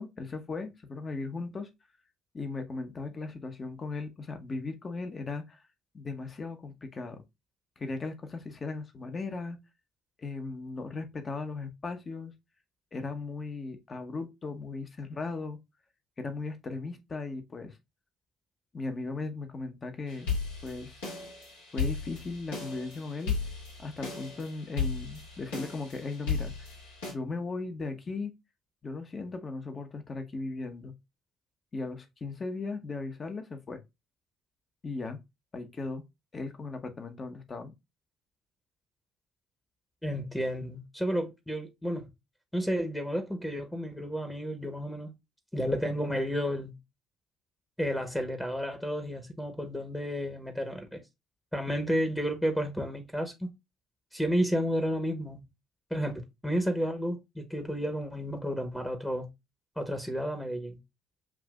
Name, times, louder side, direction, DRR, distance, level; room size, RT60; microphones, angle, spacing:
voice 1, 0.0-1.7 2.3-5.6 5.9-7.2 7.8-9.6 10.2-12.3 12.9-15.6 16.2-17.8 18.7-20.4 20.6-21.0 21.7-23.4 23.8-26.7 27.1-28.3 28.8-30.9 31.7-33.8 34.8-35.2 35.5-36.0 36.3-37.7, left 3 dB, 35° left, 1.1 m, -37 dB
sound 1, 20.1-27.1, left 5 dB, 80° left, 2.1 m, -35 dB
voice 2, 40.0-42.1 42.5-45.1 45.5-46.8 47.8-51.0 51.5-53.5 54.1-55.4 55.9-59.3 59.8-60.8, equal, 5° left, 1.1 m, -31 dB
7.3 x 2.6 x 2.4 m
hypercardioid pair, 55°, 0 cm